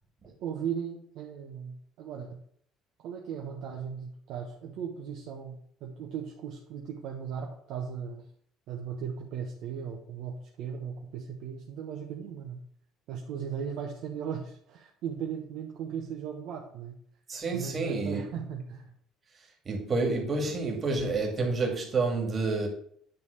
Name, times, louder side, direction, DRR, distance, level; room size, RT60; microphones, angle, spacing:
voice 1, 0.4-2.4 3.0-8.2 8.7-12.6 13.1-17.0 17.5-18.9, right 7 dB, 70° right, 1.2 m, -37 dB
voice 2, 17.3-18.2 19.7-22.7, right 3 dB, 30° right, 2.4 m, -29 dB
9.5 x 3.7 x 6.6 m
cardioid pair, 140°, 0 cm